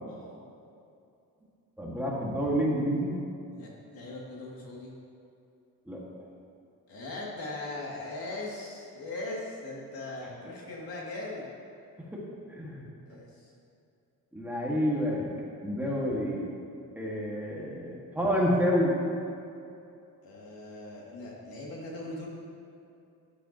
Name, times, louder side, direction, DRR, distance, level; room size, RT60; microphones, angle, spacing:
voice 1, 0.1-0.4 3.5-4.9 6.9-11.5 13.1-13.5 20.2-22.3, left 2 dB, 75° left, -4 dB, 2.7 m, -40 dB
voice 2, 1.8-3.2 5.9-6.0 12.0-12.2 12.5-12.8 14.3-15.2 15.6-16.4 17.0-18.9, equal, 5° right, -5 dB, 1.9 m, -28 dB
12.5 x 10.0 x 3.0 m, 2.6 s
cardioid pair, 125°, 36 cm